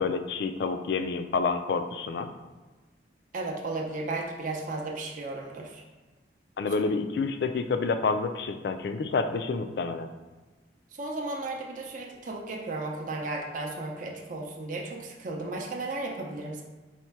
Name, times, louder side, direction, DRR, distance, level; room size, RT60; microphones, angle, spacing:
voice 1, 0.0-2.3 6.6-10.1, left 4 dB, 60° left, 8 dB, 0.3 m, -28 dB
voice 2, 3.3-5.8 10.9-16.6, right 2 dB, 45° right, 0 dB, 0.5 m, -34 dB
4.2 x 2.1 x 4.5 m, 1.2 s
head